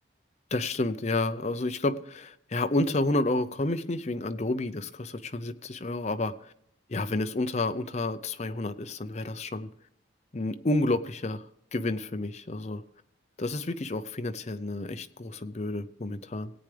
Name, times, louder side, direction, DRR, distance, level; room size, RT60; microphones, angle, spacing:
voice 1, 0.5-6.5 6.9-9.7 10.3-11.5 11.7-12.8 13.4-16.5, left 2 dB, 35° left, 10 dB, 0.6 m, -30 dB
17.5 x 9.0 x 3.4 m, 0.73 s
head